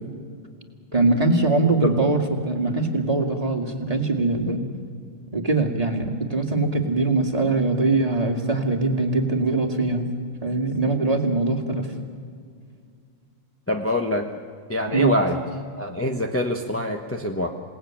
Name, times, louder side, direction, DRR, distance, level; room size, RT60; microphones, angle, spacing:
voice 1, 0.9-4.6 5.3-10.1 10.4-11.9 14.9-15.2, right 2 dB, 15° right, 3 dB, 2.1 m, -22 dB
voice 2, 13.7-14.3 14.7-15.4 15.8-17.5, left 1 dB, 10° left, 2 dB, 0.7 m, -24 dB
27.5 x 18.5 x 9.0 m, 2.2 s
omnidirectional pair, 2.3 m